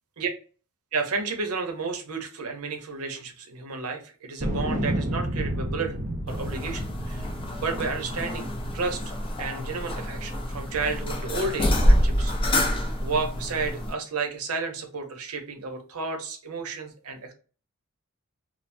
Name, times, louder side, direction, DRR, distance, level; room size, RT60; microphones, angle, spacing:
voice 1, 0.9-6.0 6.3-7.3 7.6-9.0 9.4-17.3, right 4 dB, 75° right, 5 dB, 0.7 m, -32 dB
sound 1, 4.4-9.6 10.2-10.9, right 1 dB, 35° right, 0.6 m, -32 dB
sound 2, 6.3-13.9, equal, 25° left, 0.5 m, -27 dB
3.2 x 2.0 x 2.5 m, 0.37 s
head